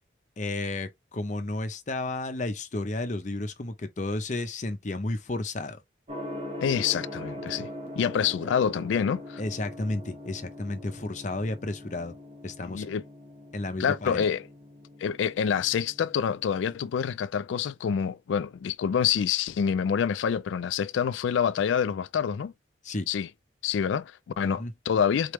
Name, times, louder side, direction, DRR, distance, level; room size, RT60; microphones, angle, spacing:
voice 1, 0.4-5.8 9.4-12.1 12.4-12.9 13.5-14.3 22.8-23.0 24.4-24.7, left 2 dB, 40° left, 0.6 m, -32 dB
Gong, 6.1-16.9, left 1 dB, 30° right, 1.0 m, -42 dB
voice 2, 6.6-7.7 8.0-9.4 12.6-13.0 13.8-14.4 15.0-22.5 23.1-23.3 23.6-25.3, left 7 dB, 75° left, 0.3 m, -27 dB
4.2 x 3.3 x 3.1 m
head